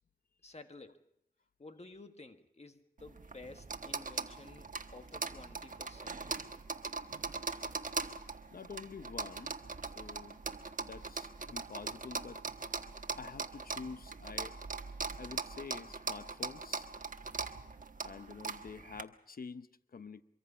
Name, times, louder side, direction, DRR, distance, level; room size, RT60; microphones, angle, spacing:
voice 1, 0.4-1.1 1.6-6.4, left 3 dB, 45° left, 6 dB, 1.6 m, -53 dB
sound 1, 3.0-19.0, right 4 dB, 65° right, 1.3 m, -41 dB
voice 2, 8.5-9.6 9.8-10.4 10.8-12.4 13.2-14.6 15.2-16.9 18.0-20.2, left 5 dB, 80° left, 12 dB, 0.8 m, -48 dB
24.0 x 23.5 x 5.6 m, 0.76 s
wide cardioid pair, 55°, 15 cm